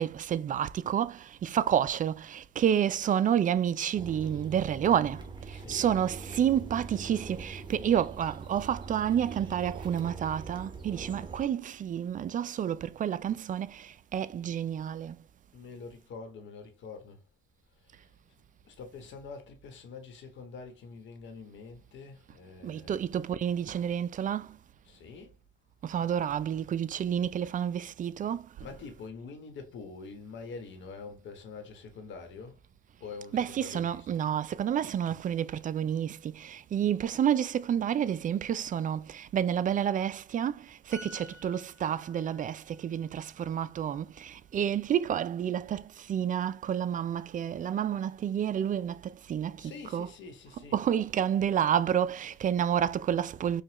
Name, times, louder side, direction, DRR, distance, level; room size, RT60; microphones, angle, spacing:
voice 1, 0.0-15.2 22.6-24.6 25.8-28.9 33.3-50.1 50.5-53.6, right 9 dB, 40° right, 0.4 m, -30 dB
sound 1, 3.9-11.4, right 4 dB, 25° right, 0.9 m, -43 dB
voice 2, 5.5-5.9 15.5-17.2 18.6-23.0 24.8-25.3 28.6-32.6 33.0-34.2 49.6-50.8, left 4 dB, 70° left, 1.2 m, -45 dB
sound 2, 40.9-44.5 44.8-45.1, left 1 dB, 5° right, 2.0 m, -52 dB
5.0 x 2.3 x 2.9 m
cardioid pair, 90°, 20 cm